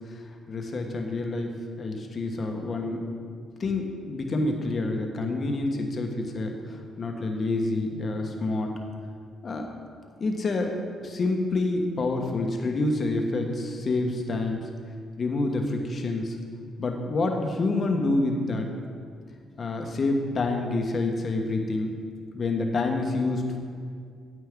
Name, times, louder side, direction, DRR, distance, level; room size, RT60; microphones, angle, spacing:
voice 1, 0.1-3.0 3.6-8.7 9.4-9.7 10.2-10.8 11.0-14.6 15.2-16.4 16.8-18.7 19.6-21.9 22.3-23.6, left 2 dB, 45° left, 3 dB, 1.2 m, -28 dB
9.3 x 8.7 x 3.7 m, 2.2 s
cardioid pair, 90°, 0 cm